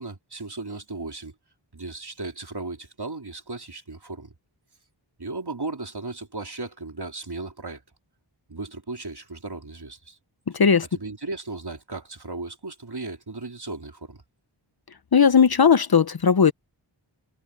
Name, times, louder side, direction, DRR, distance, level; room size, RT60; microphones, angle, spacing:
voice 1, 0.0-1.3 1.7-4.3 5.2-7.8 8.5-10.2 10.9-14.2, right 3 dB, 55° right, 3.6 m, -36 dB
voice 2, 15.1-16.5, left 6 dB, 50° left, 0.8 m, -17 dB
wide cardioid pair, 50°, 47 cm